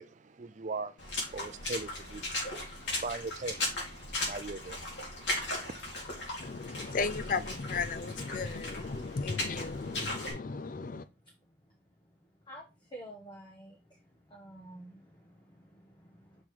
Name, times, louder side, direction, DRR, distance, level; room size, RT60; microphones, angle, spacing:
voice 1, 0.0-5.8, right 3 dB, 40° right, 0.5 m, -41 dB
Water / Splash splatter, 1.0-10.3, left 2 dB, 70° left, 3.2 m, -37 dB
voice 2, 6.4-11.0, left 4 dB, 45° left, 0.5 m, -35 dB
voice 3, 12.9-14.0 14.3-16.4, right 1 dB, 25° left, 1.1 m, -50 dB
6.4 x 3.8 x 4.5 m
head